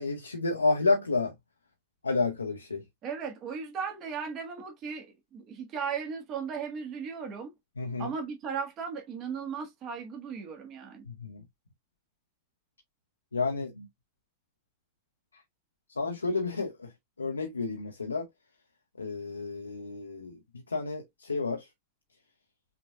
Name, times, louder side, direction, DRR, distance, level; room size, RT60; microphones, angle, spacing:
voice 1, 0.0-1.3 2.0-2.8 7.8-8.1 11.1-11.4 13.3-13.9 16.0-16.9 17.2-18.3 19.0-20.4 20.7-21.7, left 3 dB, 75° left, 0.7 m, -30 dB
voice 2, 3.0-7.5 8.0-11.0, right 6 dB, 35° right, 1.6 m, -36 dB
5.9 x 3.9 x 2.3 m
figure-of-eight pair, 90°, 0 cm